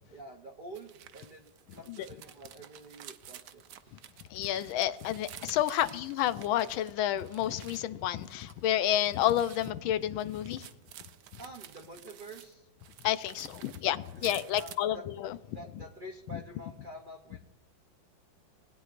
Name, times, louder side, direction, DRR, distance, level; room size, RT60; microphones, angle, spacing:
voice 1, 0.1-3.6 11.4-12.7 14.1-15.0 15.5-17.4, right 1 dB, 90° right, 0.4 m, -48 dB
sound 1, 0.7-7.8 8.2-12.5 12.8-14.8, right 11 dB, 70° right, 1.1 m, -51 dB
voice 2, 4.3-10.7 13.0-15.4, left 12 dB, 85° left, 1.4 m, -30 dB
20.0 x 9.5 x 2.5 m
omnidirectional pair, 2.1 m